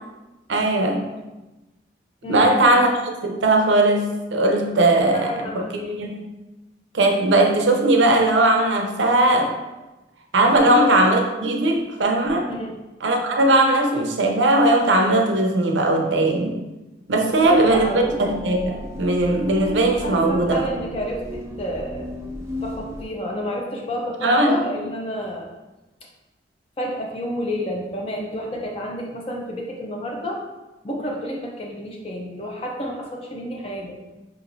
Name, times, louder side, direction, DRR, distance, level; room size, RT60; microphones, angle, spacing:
voice 1, 0.5-1.0 2.3-5.5 5.9-6.1 6.9-9.5 10.3-12.5 13.0-16.6 17.1-20.7 24.2-24.5, right 2 dB, 80° right, 3 dB, 0.6 m, -19 dB
voice 2, 2.2-2.7 5.1-6.1 10.4-10.9 12.5-12.8 17.2-18.1 20.0-22.1 22.6-25.5 26.8-30.4 30.8-34.0, equal, 30° left, 0 dB, 0.6 m, -30 dB
sound 1, 17.3-23.0, left 1 dB, 15° right, 0.4 m, -34 dB
4.9 x 3.0 x 2.6 m, 1.1 s
head